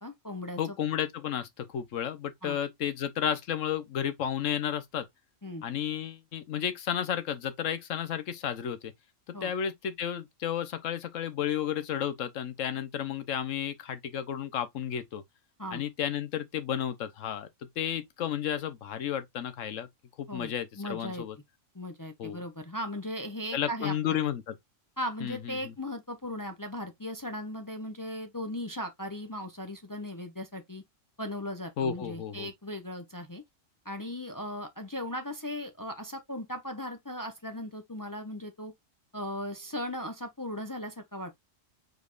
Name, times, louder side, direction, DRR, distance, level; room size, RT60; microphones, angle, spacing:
voice 1, 0.0-0.6 2.4-2.6 5.4-5.6 9.3-9.5 15.6-15.8 20.3-21.2 21.7-23.9 25.0-30.8 31.2-33.4 33.8-38.7 39.1-41.4, left 1 dB, 25° left, 0.4 m, -37 dB
voice 2, 0.6-5.1 5.6-8.9 9.3-15.2 15.7-17.5 17.8-19.9 20.2-21.4 22.2-22.4 23.5-24.5 25.2-25.7 31.8-32.5, left 9 dB, 75° left, 1.2 m, -32 dB
5.1 x 4.0 x 2.4 m
omnidirectional pair, 1.3 m